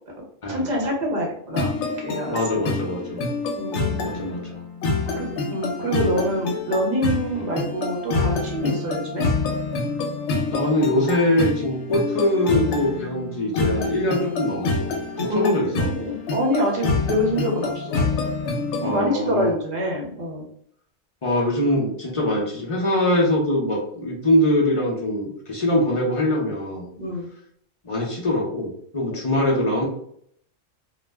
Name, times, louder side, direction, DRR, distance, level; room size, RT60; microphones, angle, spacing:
voice 1, 0.5-2.6 3.5-4.1 5.1-9.3 15.2-18.1 18.8-20.4 27.0-27.3, equal, 45° right, -1 dB, 0.9 m, -26 dB
sound 1, 1.5-19.0, left 3 dB, 70° left, 0.9 m, -27 dB
voice 2, 2.3-3.2 4.0-4.6 7.3-7.5 10.5-14.9 15.2-15.9 18.8-19.5 21.2-26.9 27.8-29.8, left 1 dB, 40° left, -2 dB, 0.5 m, -23 dB
2.3 x 2.0 x 3.3 m, 0.65 s
omnidirectional pair, 1.3 m